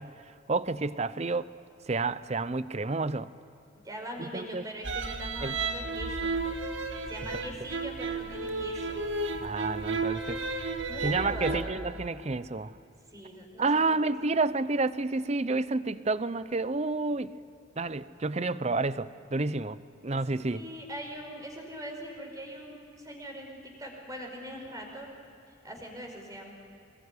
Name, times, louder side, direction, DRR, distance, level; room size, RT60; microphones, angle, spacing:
voice 1, 0.0-1.5 1.9-3.3 4.2-4.6 5.4-5.6 7.3-7.4 9.4-10.4 11.0-12.7 13.6-17.3 17.8-19.8 20.0-20.7, right 3 dB, 35° right, 15 dB, 0.7 m, -30 dB
voice 2, 3.8-6.3 7.1-9.0 10.9-11.8 13.1-14.1 20.1-25.1 25.5-26.5, equal, 20° right, 1 dB, 5.2 m, -42 dB
sound 1, 4.8-11.6, right 3 dB, 85° right, 1.8 m, -33 dB
24.5 x 21.5 x 9.8 m, 2.7 s
head